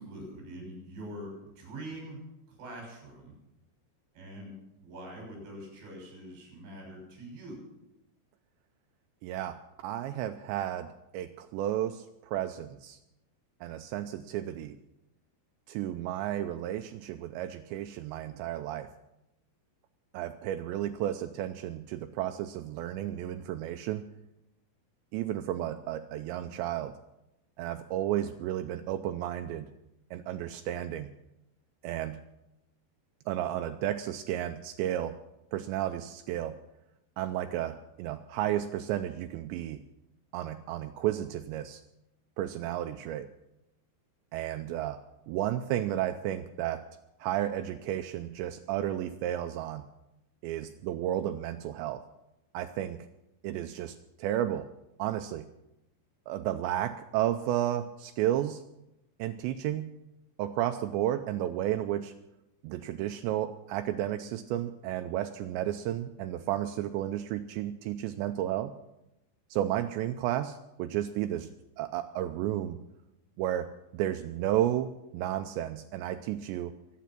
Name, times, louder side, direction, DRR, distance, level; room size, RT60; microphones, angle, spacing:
voice 1, 0.0-2.2 2.5-3.3 4.1-4.5 4.8-7.6, right 1 dB, 65° right, 1 dB, 8.4 m, -44 dB
voice 2, 9.2-10.9 11.1-13.0 13.6-14.7 15.7-18.9 20.1-24.1 25.1-26.9 27.6-29.7 30.1-31.1 31.8-32.2 33.3-35.2 35.5-36.6 37.2-39.8 40.3-41.8 42.4-43.3 44.3-45.0 45.3-46.8 47.2-49.8 50.4-52.0 52.5-53.0 53.4-54.7 55.0-55.5 56.3-58.6 59.2-59.9 60.4-62.1 62.6-68.7 69.5-71.5 71.8-72.8 73.4-76.7, right 12 dB, 85° right, 8 dB, 2.5 m, -32 dB
22.5 x 9.4 x 6.0 m, 0.89 s
omnidirectional pair, 5.7 m